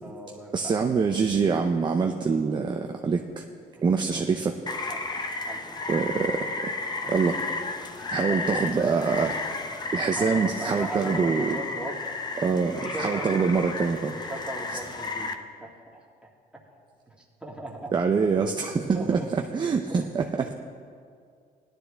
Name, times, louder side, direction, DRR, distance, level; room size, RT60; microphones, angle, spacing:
voice 1, 0.0-0.7 3.7-4.2 4.9-5.2 5.5-5.9 7.0-7.1 8.2-8.6 10.2-12.1 12.7-13.4 14.1-15.3 15.6-16.6 17.1-17.9 18.7-19.3 19.9-20.1 20.4-20.5, right 1 dB, 5° right, -3 dB, 1.9 m, -38 dB
voice 2, 0.5-3.4 3.8-4.5 5.9-6.7 7.1-7.4 8.1-9.6 9.9-11.6 12.4-14.2 17.9-20.5, right 5 dB, 25° right, 3 dB, 0.6 m, -25 dB
Rain, 4.7-15.3, left 3 dB, 25° left, 0.8 m, -33 dB
17.5 x 11.5 x 3.4 m, 2.2 s
cardioid pair, 110°, 17 cm